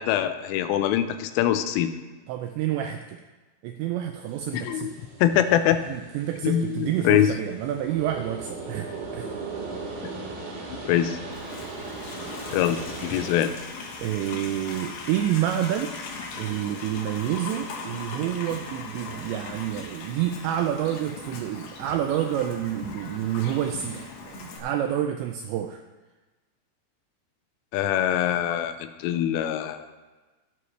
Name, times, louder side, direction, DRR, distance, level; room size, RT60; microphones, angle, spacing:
voice 1, 0.0-1.9 4.5-4.9 5.2-5.8 6.4-7.3 10.0-10.1 10.7-11.2 12.5-13.5 27.7-29.9, left 11 dB, 85° left, 10 dB, 3.2 m, -23 dB
voice 2, 2.3-3.2 3.6-4.9 5.9-9.5 14.0-15.9 16.4-25.8, right 11 dB, 85° right, 5 dB, 2.5 m, -28 dB
sound 1, 4.3-13.4, right 4 dB, 60° right, 4.4 m, -38 dB
Livestock farm animals working animals, 11.3-24.6, left 4 dB, 70° left, 3.6 m, -39 dB
16.5 x 9.4 x 3.2 m, 1.2 s
omnidirectional pair, 5.7 m